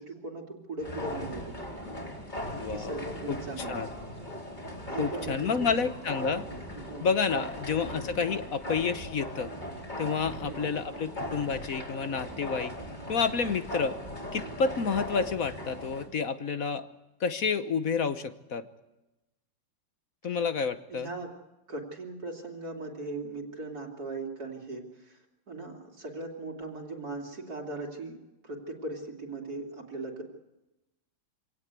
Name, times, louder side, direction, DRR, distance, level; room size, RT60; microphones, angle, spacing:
voice 1, 0.0-1.5 2.7-3.7 4.9-5.9 6.8-7.1 7.3-7.4 10.4-10.8 20.9-21.3 21.7-28.2 28.4-30.2, right 2 dB, 50° right, 0 dB, 3.2 m, -39 dB
sound 1, 0.8-16.1, left 1 dB, 20° left, 4.3 m, -39 dB
voice 2, 2.5-2.9 3.3-3.4 3.7-3.9 5.0-6.4 7.0-9.5 10.0-12.7 13.1-14.0 14.3-16.9 17.2-18.7 20.2-21.1, left 5 dB, 50° left, 11 dB, 1.2 m, -29 dB
25.5 x 17.5 x 8.2 m, 0.99 s
omnidirectional pair, 2.2 m